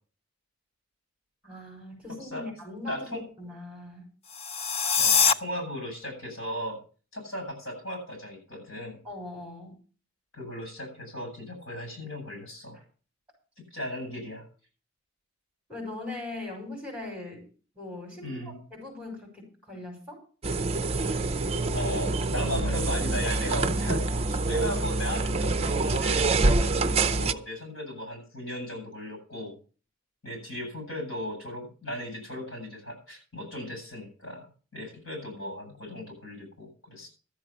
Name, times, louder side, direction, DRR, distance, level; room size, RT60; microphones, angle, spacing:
voice 1, 1.4-4.0 9.0-9.8 12.7-12.8 15.7-17.4 17.7-20.2 21.7-22.0, left 2 dB, 5° right, 1 dB, 6.3 m, -40 dB
voice 2, 2.9-3.2 5.0-6.8 7.1-9.0 10.3-12.8 13.7-14.5 18.2-18.6 21.7-29.5 30.2-34.5 34.7-37.1, left 1 dB, 65° left, 3 dB, 7.8 m, -36 dB
sound 1, 4.3-5.3, left 6 dB, 30° left, 0.6 m, -23 dB
sound 2, 20.4-27.3, right 3 dB, 30° right, 0.6 m, -26 dB
13.5 x 7.5 x 7.0 m, 0.38 s
head